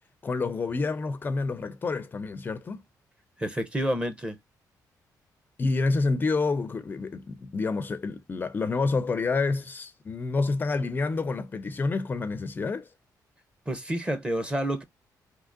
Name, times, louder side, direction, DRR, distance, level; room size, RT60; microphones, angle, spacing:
voice 1, 0.2-2.8 5.6-12.9, left 3 dB, 30° left, 0.4 m, -28 dB
voice 2, 3.4-4.4 13.7-14.8, right 1 dB, 15° right, 0.7 m, -29 dB
3.5 x 2.8 x 2.5 m
cardioid pair, 135°, 7 cm